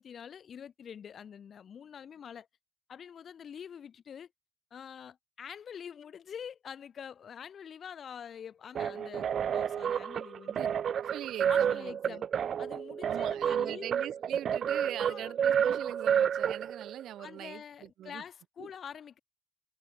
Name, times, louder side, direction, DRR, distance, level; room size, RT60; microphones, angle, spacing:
voice 1, 0.0-2.5 2.9-4.3 4.7-9.3 9.5-10.8 11.5-12.3 12.6-13.9 15.0-15.3 17.2-19.2, left 8 dB, 55° left, 7.8 m, -46 dB
sound 1, 8.8-17.0, right 8 dB, 60° right, 1.4 m, -30 dB
voice 2, 11.0-12.2 13.1-18.2 18.6-18.7, right 12 dB, 80° right, 5.2 m, -42 dB
cardioid pair, 90°, 0 cm